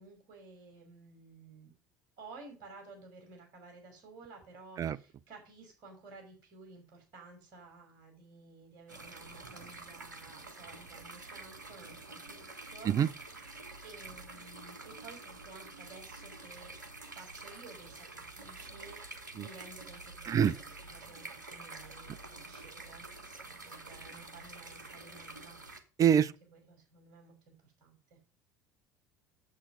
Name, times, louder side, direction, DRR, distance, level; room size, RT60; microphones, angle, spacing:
voice 1, 0.0-1.7 2.2-13.5 13.8-16.7 17.0-23.1 23.6-25.6 26.0-27.5 27.8-28.2, right 3 dB, 55° right, 5.7 m, -54 dB
sound 1, 8.9-25.8, right 3 dB, 85° right, 1.3 m, -48 dB
voice 2, 26.0-26.3, right 8 dB, 35° right, 0.7 m, -24 dB
8.7 x 7.6 x 5.3 m
figure-of-eight pair, 65°, 10 cm